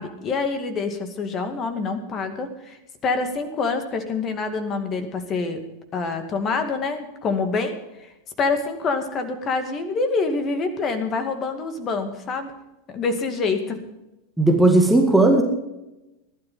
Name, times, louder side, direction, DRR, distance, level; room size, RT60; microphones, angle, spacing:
voice 1, 0.0-5.6 5.9-8.1 8.4-12.5 12.9-13.8, left 4 dB, 30° left, 7 dB, 2.3 m, -26 dB
voice 2, 14.4-15.4, right 2 dB, 5° right, 2 dB, 2.1 m, -16 dB
20.5 x 12.0 x 3.8 m, 0.96 s
figure-of-eight pair, 90°, 0 cm